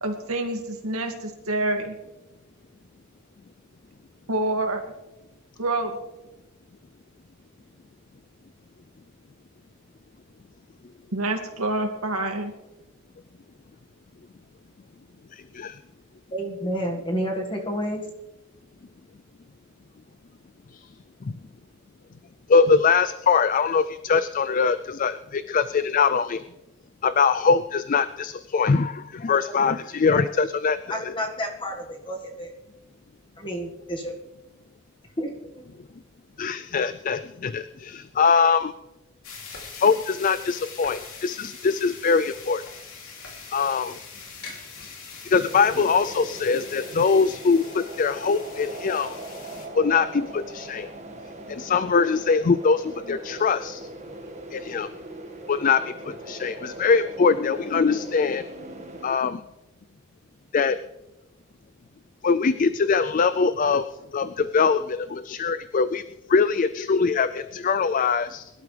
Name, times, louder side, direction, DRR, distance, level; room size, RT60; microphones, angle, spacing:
voice 1, 0.0-1.9 4.3-4.8 5.6-6.0 11.1-12.5, right 2 dB, 85° right, 4 dB, 2.2 m, -27 dB
voice 2, 15.3-15.8 20.7-20.9 21.2-21.3 22.5-26.4 27.0-31.1 36.4-38.7 39.7-42.7 43.5-44.0 45.2-49.2 49.7-50.9 51.5-53.8 54.5-54.9 55.5-58.5 59.0-59.4 60.5-60.8 62.2-68.5, left 5 dB, 40° left, 12 dB, 0.3 m, -22 dB
voice 3, 16.3-18.0 29.3-29.4 30.0-30.2 30.9-32.5 33.4-34.1 35.2-35.6, equal, 25° left, 1 dB, 1.7 m, -30 dB
cooking-sizzeling-sound-of-meatloaf, 39.2-49.7, left 5 dB, 75° left, 3.0 m, -42 dB
sound 1, 45.5-59.1, right 1 dB, 30° right, 1.7 m, -40 dB
22.5 x 12.0 x 3.3 m, 0.99 s
head